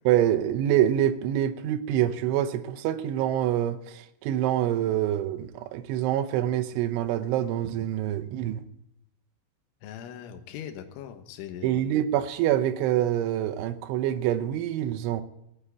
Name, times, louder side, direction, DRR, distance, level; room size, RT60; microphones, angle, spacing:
voice 1, 0.0-8.6 11.6-15.2, right 11 dB, 80° right, 3.1 m, -26 dB
voice 2, 9.8-11.9, left 9 dB, 75° left, 3.5 m, -40 dB
16.0 x 8.7 x 8.2 m
omnidirectional pair, 5.8 m